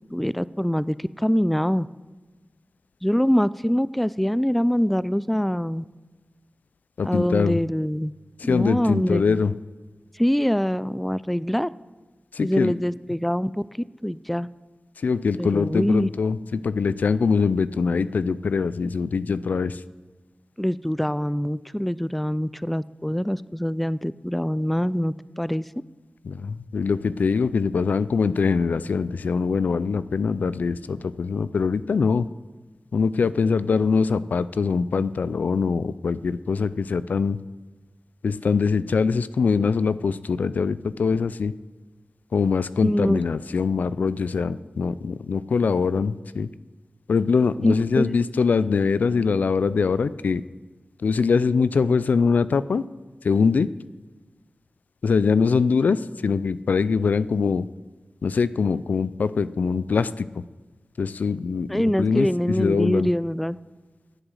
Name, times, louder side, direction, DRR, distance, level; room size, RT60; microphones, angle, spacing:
voice 1, 0.1-1.9 3.0-5.8 7.0-8.1 8.4-9.4 10.2-11.7 12.4-13.5 14.0-14.5 15.4-16.1 20.6-25.7 42.8-43.2 47.6-48.1 61.7-63.6, equal, 5° left, 18 dB, 0.3 m, -24 dB
voice 2, 7.0-7.6 8.4-9.5 12.3-12.7 15.0-19.8 26.2-32.3 32.9-37.4 38.2-41.5 42.3-46.5 47.1-50.4 51.0-52.8 53.2-53.7 55.0-57.7 58.2-60.4 61.0-63.1, left 5 dB, 85° left, 16 dB, 0.3 m, -23 dB
10.0 x 7.9 x 7.6 m, 1.2 s
cardioid pair, 40°, 3 cm